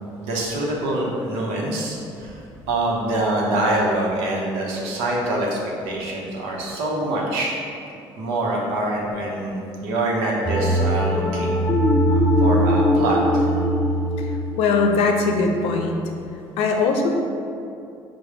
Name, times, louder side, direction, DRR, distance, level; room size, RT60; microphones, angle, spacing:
voice 1, 0.2-2.4 2.7-7.5 8.2-11.6 12.1-13.5, right 1 dB, 90° right, -2 dB, 0.9 m, -25 dB
sound 1, 10.4-15.7, equal, 15° left, 0.4 m, -21 dB
voice 2, 14.2-15.9 16.6-17.2, left 4 dB, 75° left, 3 dB, 0.5 m, -21 dB
4.8 x 2.2 x 4.7 m, 2.6 s
supercardioid pair, 90°, 10 cm